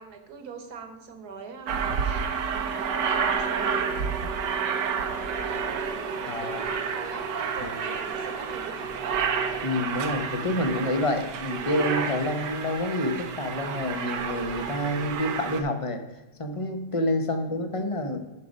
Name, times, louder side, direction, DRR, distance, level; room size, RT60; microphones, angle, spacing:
voice 1, 0.0-3.8 5.0-9.2 17.3-17.5, right 5 dB, 65° right, 6 dB, 1.7 m, -43 dB
Aircraft, 1.7-15.6, right 6 dB, 80° right, 1.5 m, -30 dB
voice 2, 6.3-6.6 7.6-7.7 9.6-16.0 16.4-18.2, left 1 dB, 30° left, 6 dB, 0.6 m, -28 dB
11.0 x 5.0 x 5.3 m, 1.1 s
omnidirectional pair, 1.9 m